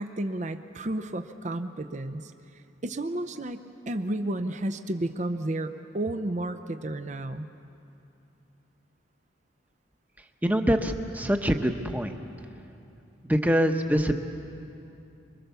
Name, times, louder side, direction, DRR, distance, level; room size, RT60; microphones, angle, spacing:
voice 1, 0.0-2.3 2.8-3.6 3.9-7.5, right 1 dB, 35° right, 8 dB, 0.6 m, -32 dB
voice 2, 10.4-12.1 13.3-14.2, equal, 10° right, 5 dB, 1.0 m, -24 dB
25.5 x 23.0 x 6.9 m, 2.7 s
head